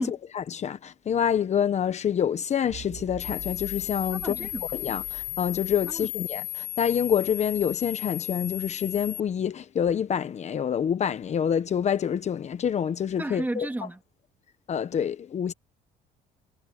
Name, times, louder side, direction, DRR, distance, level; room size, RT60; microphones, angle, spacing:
voice 1, 0.0-13.7 14.7-15.5, left 8 dB, 40° left, 1.0 m, -27 dB
sound 1, 2.7-6.8, right 11 dB, 60° right, 7.4 m, -45 dB
sound 2, 3.2-9.2, left 21 dB, 85° left, 4.7 m, -35 dB
voice 2, 4.1-4.6 5.9-6.1 13.2-14.0, right 2 dB, 10° right, 2.0 m, -33 dB
cardioid pair, 110°, 17 cm